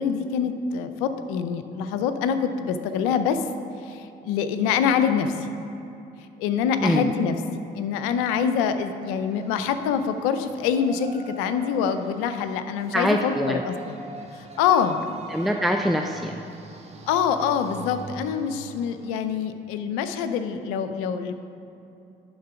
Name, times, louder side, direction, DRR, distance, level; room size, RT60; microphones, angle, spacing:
voice 1, 0.0-3.4 3.8-5.5 6.4-7.4 7.7-14.0 14.3-15.0 17.1-21.3, left 7 dB, 85° left, 9 dB, 0.5 m, -25 dB
voice 2, 6.8-7.1 12.9-13.6 15.3-16.4, equal, ahead, 3 dB, 0.4 m, -24 dB
Yell, 9.1-19.3, right 2 dB, 30° right, 1.3 m, -44 dB
10.5 x 3.8 x 5.8 m, 2.8 s
supercardioid pair, 60°, 21 cm